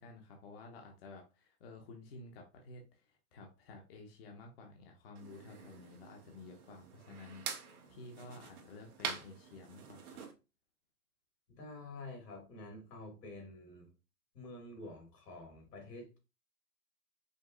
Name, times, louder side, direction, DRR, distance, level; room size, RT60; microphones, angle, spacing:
voice 1, 0.0-10.2, left 3 dB, 40° left, 0.9 m, -52 dB
sound 1, 5.2-10.3, right 6 dB, 65° right, 1.3 m, -46 dB
voice 2, 11.5-13.9 14.3-16.2, left 2 dB, 85° left, 2.6 m, -49 dB
5.2 x 2.0 x 3.8 m
hypercardioid pair, 155°, 47 cm